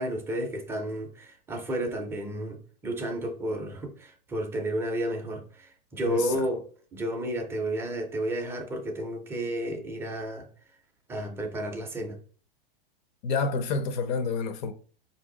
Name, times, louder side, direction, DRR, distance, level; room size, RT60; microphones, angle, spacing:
voice 1, 0.0-6.6 6.9-10.5 11.1-12.2, right 1 dB, 10° right, 0.4 m, -32 dB
voice 2, 13.2-14.7, left 4 dB, 50° left, 0.6 m, -28 dB
4.3 x 2.7 x 3.7 m
supercardioid pair, 145°, 29 cm